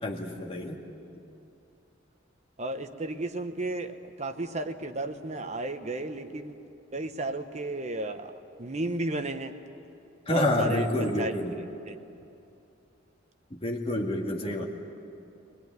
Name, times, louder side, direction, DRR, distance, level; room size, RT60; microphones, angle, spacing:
voice 1, 0.0-0.8 10.3-11.5 13.5-14.7, left 1 dB, 30° left, 0 dB, 2.3 m, -28 dB
voice 2, 2.6-6.6 6.9-8.3 8.6-9.5 10.3-11.3 11.9-12.0, right 2 dB, 35° right, 7 dB, 1.1 m, -33 dB
22.0 x 20.5 x 9.5 m, 2.7 s
head